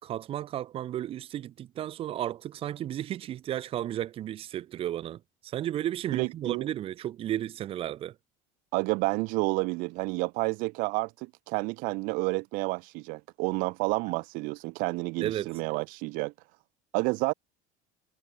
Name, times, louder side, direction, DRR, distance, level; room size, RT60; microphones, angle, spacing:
voice 1, 0.0-8.1 15.2-15.6, right 12 dB, 35° right, 3.1 m, -33 dB
voice 2, 6.1-6.7 8.7-16.3 16.9-17.3, right 26 dB, 60° right, 1.6 m, -30 dB
cardioid pair, 155°, 16 cm